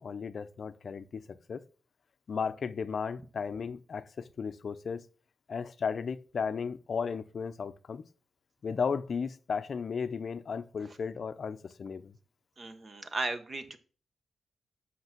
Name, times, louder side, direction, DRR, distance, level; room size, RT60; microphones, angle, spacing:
voice 1, 0.0-1.6 2.3-5.0 5.5-8.0 8.6-12.1, left 6 dB, 50° left, 0.6 m, -35 dB
voice 2, 12.6-13.8, right 3 dB, 35° right, 1.0 m, -36 dB
8.1 x 5.9 x 6.0 m
wide cardioid pair, 140°, 0 cm